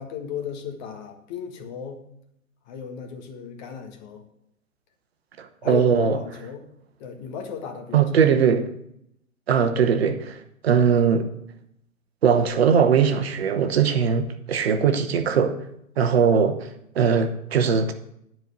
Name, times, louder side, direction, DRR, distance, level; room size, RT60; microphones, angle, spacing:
voice 1, 0.0-2.0 2.7-4.2 5.6-6.6 7.0-8.1, left 7 dB, 35° left, 4 dB, 1.6 m, -35 dB
voice 2, 5.4-6.2 7.9-8.7 9.5-11.3 12.2-15.5 16.0-16.7 16.9-17.9, right 7 dB, 50° right, 7 dB, 1.1 m, -20 dB
10.5 x 4.6 x 8.1 m, 0.75 s
figure-of-eight pair, 115°, 41 cm